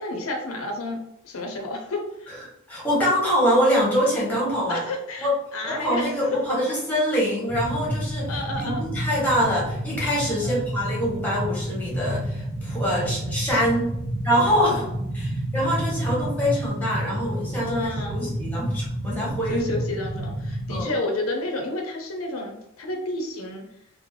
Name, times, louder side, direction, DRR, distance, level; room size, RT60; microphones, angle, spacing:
voice 1, 0.0-2.3 4.7-6.2 8.3-8.8 10.4-10.7 14.7-14.9 17.6-18.2 19.5-23.7, left 2 dB, 70° left, 3 dB, 0.6 m, -31 dB
voice 2, 2.7-4.8 5.2-5.3 5.6-8.3 8.6-13.9 14.2-14.8 15.1-19.6 20.7-20.9, equal, 10° left, -5 dB, 1.1 m, -24 dB
sound 1, 7.5-20.8, right 1 dB, 25° right, 0.4 m, -30 dB
3.7 x 2.1 x 3.2 m, 0.81 s
head